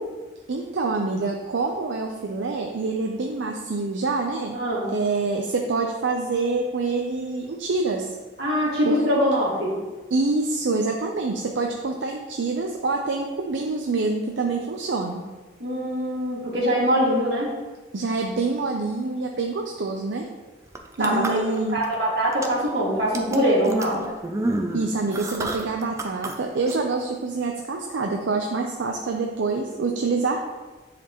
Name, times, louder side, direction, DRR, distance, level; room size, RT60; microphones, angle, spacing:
voice 1, 0.5-4.6 4.9-8.1 8.8-9.0 10.1-15.2 17.9-20.3 21.0-21.8 24.7-30.4, right 3 dB, 85° right, 2 dB, 0.5 m, -26 dB
voice 2, 4.5-4.9 8.4-9.8 15.6-17.5 21.0-24.0, equal, 65° right, -5 dB, 2.0 m, -23 dB
sound 1, 20.7-21.9 22.3-22.7 23.1-26.3 26.7-26.8, right 2 dB, 15° right, 0.4 m, -30 dB
9.9 x 4.2 x 3.0 m, 1.3 s
head